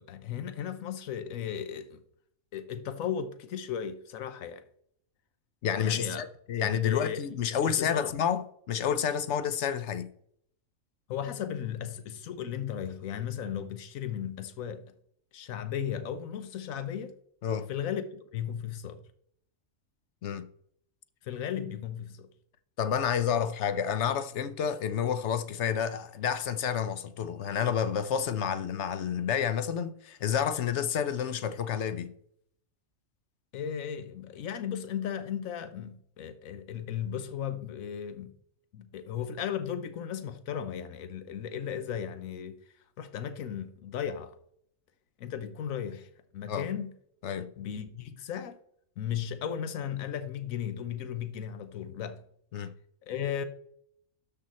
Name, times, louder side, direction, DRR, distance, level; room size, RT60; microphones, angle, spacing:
voice 1, 0.0-2.0 2.5-4.6 5.8-6.2 6.6-7.2 7.6-8.2 11.1-14.8 15.3-17.2 17.7-19.0 21.2-22.3 33.5-38.3 38.7-42.6 43.0-44.4 45.2-46.9 47.6-48.6 49.0-52.2 53.0-53.4, left 8 dB, 85° left, 1.2 m, -36 dB
voice 2, 5.6-10.1 17.4-17.7 20.2-20.5 22.8-32.1 46.5-46.7 47.2-47.5 52.5-52.7, left 8 dB, 65° left, 0.9 m, -29 dB
12.5 x 5.7 x 4.2 m
omnidirectional pair, 1.4 m